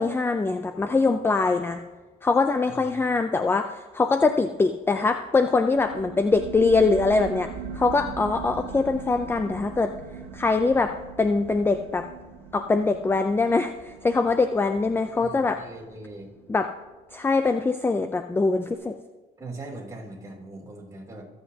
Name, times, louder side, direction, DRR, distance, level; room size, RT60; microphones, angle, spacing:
voice 1, 0.0-1.8 2.2-10.0 10.3-12.1 12.5-15.6 16.5-16.7 17.1-19.0, left 3 dB, 15° left, 8 dB, 0.4 m, -23 dB
sound 1, 5.8-16.9, right 6 dB, 85° right, 1.2 m, -40 dB
voice 2, 15.1-16.3 19.4-21.2, right 2 dB, 20° right, -2 dB, 3.0 m, -40 dB
23.5 x 8.0 x 2.8 m, 1.3 s
cardioid pair, 110°, 17 cm